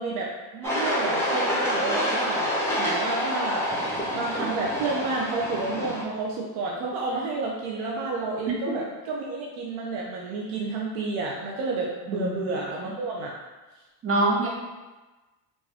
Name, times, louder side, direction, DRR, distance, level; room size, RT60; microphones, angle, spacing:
voice 1, 0.0-3.8 4.1-13.3, right 3 dB, 75° right, -2 dB, 0.7 m, -30 dB
sound 1, 0.6-6.0, equal, 5° left, 0.8 m, -27 dB
voice 2, 12.1-12.4 14.0-14.5, right 2 dB, 30° right, -4 dB, 1.1 m, -24 dB
3.5 x 2.6 x 3.3 m, 1.2 s
supercardioid pair, 95°, 47 cm